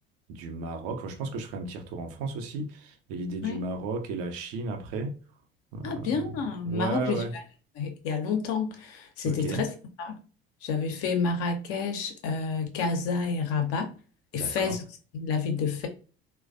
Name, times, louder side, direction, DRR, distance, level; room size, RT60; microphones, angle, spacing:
voice 1, 0.3-5.2 5.7-7.3 9.2-9.7 14.3-14.8, right 3 dB, 55° right, 0.7 m, -34 dB
voice 2, 5.8-7.4 7.8-9.7 10.0-10.2 10.6-13.9 14.3-14.8 15.1-15.9, left 5 dB, 50° left, 0.7 m, -29 dB
3.1 x 2.2 x 2.5 m
figure-of-eight pair, 60°, 30 cm